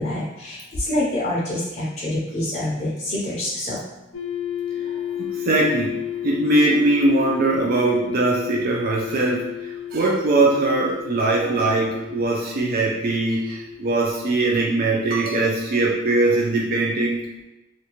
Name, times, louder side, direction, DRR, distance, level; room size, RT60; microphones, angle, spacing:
voice 1, 0.0-3.8, left 1 dB, 40° left, -6 dB, 0.5 m, -26 dB
sound 1, 4.1-14.8, left 10 dB, 90° left, 0.5 m, -33 dB
voice 2, 5.2-9.5 9.9-17.3, right 2 dB, 45° right, -1 dB, 0.3 m, -21 dB
2.5 x 2.1 x 2.9 m, 0.98 s
head